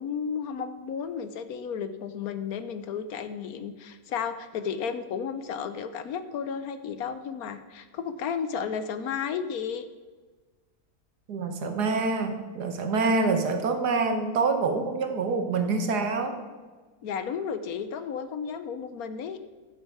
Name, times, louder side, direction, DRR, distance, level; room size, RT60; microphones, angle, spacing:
voice 1, 0.0-9.8 17.0-19.4, left 7 dB, 70° left, 10 dB, 1.1 m, -33 dB
voice 2, 11.3-16.4, right 4 dB, 80° right, 6 dB, 1.8 m, -26 dB
15.0 x 6.3 x 4.9 m, 1.3 s
omnidirectional pair, 1.7 m